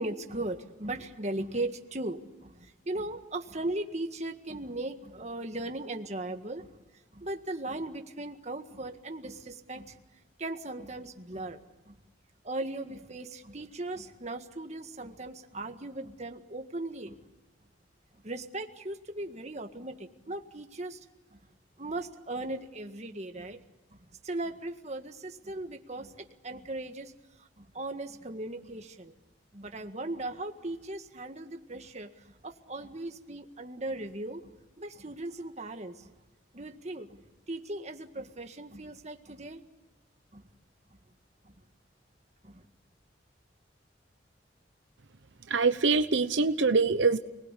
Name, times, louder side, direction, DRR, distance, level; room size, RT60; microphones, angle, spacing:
voice 1, 0.0-6.7 7.1-10.0 10.4-11.6 11.9-12.0 12.4-17.2 18.2-21.0 21.3-21.4 21.8-23.6 23.9-27.1 27.4-29.1 29.5-34.5 34.8-36.1 36.5-37.2 37.5-39.6 40.3-40.4 41.4-41.5 42.4-42.7, right 2 dB, 40° right, 6 dB, 1.8 m, -38 dB
voice 2, 45.5-47.2, right 4 dB, 85° right, 10 dB, 0.9 m, -24 dB
30.0 x 20.0 x 8.4 m, 1.1 s
head